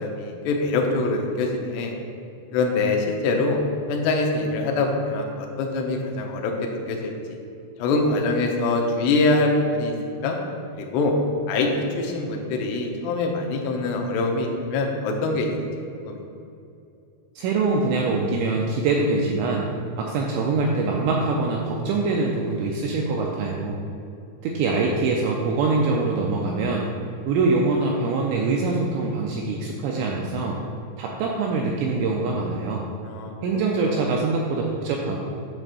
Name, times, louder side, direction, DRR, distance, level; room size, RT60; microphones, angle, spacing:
voice 1, 0.0-1.9 2.5-3.6 3.9-7.1 7.8-9.9 10.2-10.4 10.7-11.1 11.5-11.7 12.0-15.5 16.0-16.2 33.0-33.3 33.8-34.1, left 3 dB, 80° left, 1 dB, 2.4 m, -24 dB
voice 2, 17.4-19.7 20.0-23.8 24.4-26.9 27.3-30.6 31.0-32.9 33.4-35.2, right 3 dB, 85° right, -1 dB, 2.6 m, -24 dB
8.7 x 3.6 x 6.7 m, 2.6 s
omnidirectional pair, 5.8 m